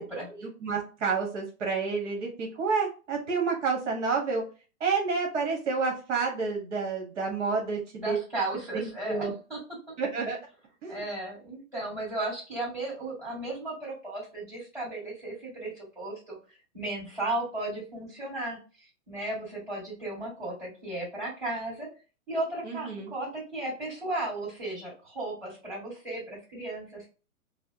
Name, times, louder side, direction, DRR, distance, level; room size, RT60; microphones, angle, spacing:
voice 1, 0.4-4.4 4.8-8.2 8.7-9.3 10.0-10.4 10.8-11.1 22.6-23.1, right 4 dB, 55° right, 1 dB, 1.1 m, -29 dB
voice 2, 8.0-9.6 9.9-10.0 10.9-16.4 16.7-18.6 19.1-21.9 22.3-27.1, right 2 dB, 5° right, -10 dB, 1.7 m, -35 dB
4.3 x 2.0 x 2.7 m, 0.34 s
hypercardioid pair, 160°, 42 cm